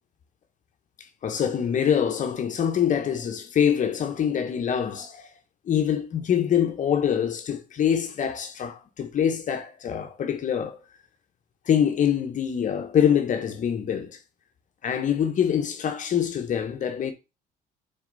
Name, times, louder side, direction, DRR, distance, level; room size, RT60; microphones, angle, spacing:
voice 1, 1.2-5.3 5.7-10.8 11.7-14.2 14.8-17.1, left 8 dB, 50° left, 1.2 m, -25 dB
6.5 x 4.3 x 4.1 m
cardioid pair, 110°, 17 cm